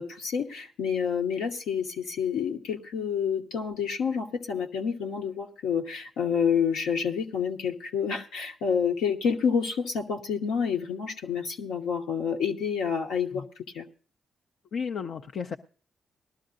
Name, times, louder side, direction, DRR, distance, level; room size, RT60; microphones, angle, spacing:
voice 1, 0.0-13.4 13.7-13.8, left 7 dB, 85° left, 2 dB, 1.2 m, -28 dB
voice 2, 14.7-15.6, left 6 dB, 70° left, 5 dB, 0.5 m, -33 dB
19.5 x 12.5 x 2.5 m, 0.40 s
supercardioid pair, 50°, 0 cm